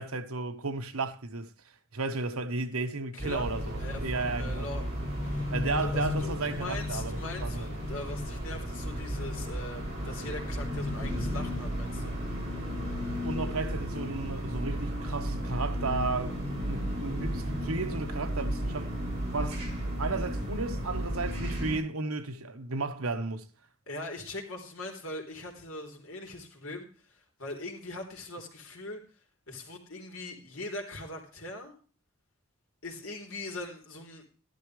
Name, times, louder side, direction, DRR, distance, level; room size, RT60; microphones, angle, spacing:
voice 1, 0.0-1.5 1.9-4.7 5.5-7.7 13.2-18.9 19.3-19.6 20.0-23.5, right 3 dB, 85° right, 1.3 m, -34 dB
voice 2, 3.1-3.5 3.8-4.8 5.2-5.5 5.7-12.2 23.9-27.1 27.4-29.0 29.5-31.8 32.8-34.2, left 2 dB, 70° left, 3.5 m, -41 dB
sound 1, 3.2-21.8, equal, 30° right, 6.3 m, -33 dB
13.0 x 12.0 x 3.3 m
head